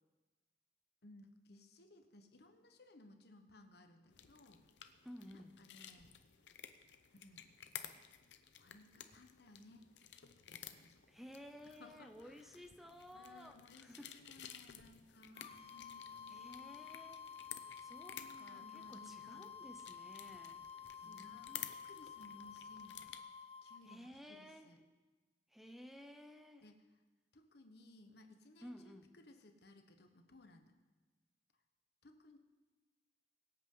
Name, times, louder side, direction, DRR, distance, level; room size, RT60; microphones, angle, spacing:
voice 1, 1.0-4.6 5.3-6.1 7.1-7.5 8.6-9.9 10.5-11.0 11.6-12.8 13.1-16.8 18.1-19.5 21.0-23.2 23.6-24.8 26.6-26.8 27.3-30.7 32.0-32.4, left 2 dB, 65° left, 6 dB, 1.2 m, -61 dB
sound 1, 4.1-23.2, left 10 dB, 90° left, 0.8 m, -54 dB
voice 2, 5.0-5.6 11.1-14.2 14.7-14.8 16.3-17.2 17.8-20.6 21.0-21.7 23.8-24.7 25.5-26.7 28.6-29.1, equal, ahead, 6 dB, 0.7 m, -55 dB
sound 2, 15.3-24.0, left 7 dB, 35° left, 0.7 m, -52 dB
23.0 x 8.6 x 3.9 m, 1.3 s
head